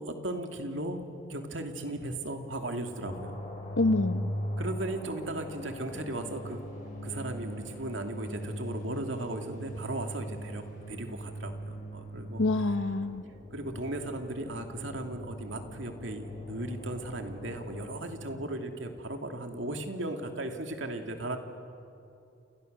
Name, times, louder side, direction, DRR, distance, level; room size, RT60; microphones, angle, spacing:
voice 1, 0.0-3.4 4.6-6.6 6.9-12.7 13.5-21.4, right 1 dB, 70° right, 4 dB, 2.6 m, -37 dB
sound 1, 3.0-18.0, equal, 40° left, 6.7 m, -40 dB
voice 2, 3.8-4.2 12.4-13.2, left 2 dB, 75° left, 11 dB, 1.1 m, -26 dB
29.5 x 29.0 x 6.8 m, 2.6 s
head